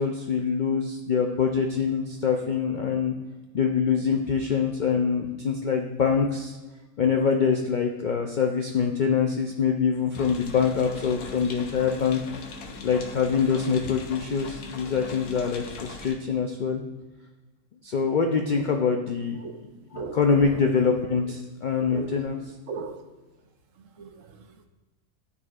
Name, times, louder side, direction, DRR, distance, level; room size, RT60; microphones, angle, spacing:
voice 1, 0.0-3.1 3.5-6.6 7.0-12.2 12.8-16.8 17.8-19.4 20.2-21.4 21.6-22.4, left 6 dB, 70° left, 0.4 m, -24 dB
sound 1, 10.1-16.1, left 3 dB, 90° left, 1.3 m, -40 dB
voice 2, 19.9-20.7 21.2-21.3 21.9-22.2 22.7-23.1 23.7-24.7, right 5 dB, 70° right, 1.0 m, -38 dB
12.0 x 4.1 x 2.4 m
omnidirectional pair, 1.5 m